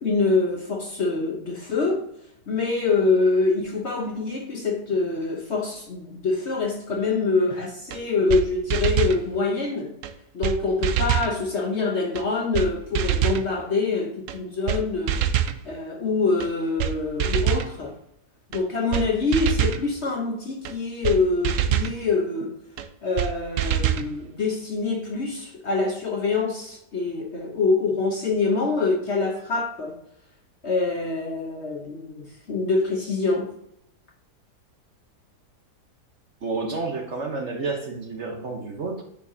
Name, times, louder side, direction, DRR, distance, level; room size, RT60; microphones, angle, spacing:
voice 1, 0.0-2.1 2.5-9.9 10.3-15.2 15.6-18.0 18.5-22.6 23.0-30.0 30.6-33.5, left 3 dB, 50° left, 0.9 m, -25 dB
sound 1, 7.9-8.0 8.3-8.4 8.7-9.2 10.0-10.1 10.4-10.6 10.8-11.3 12.2-12.3 12.5-12.7 12.9-13.4 14.3-14.4 14.7-14.8 15.1-15.6 16.4-16.5 16.8-16.9 17.2-17.7 18.5-18.6 18.9-19.1 19.3-19.8 20.7-20.8 21.0-21.2 21.4-21.9 22.8-22.9 23.2-23.3 23.6-24.1, right 10 dB, 70° right, 0.8 m, -24 dB
voice 2, 36.4-39.0, right 3 dB, 50° right, 1.0 m, -30 dB
9.2 x 4.6 x 2.7 m
omnidirectional pair, 1.8 m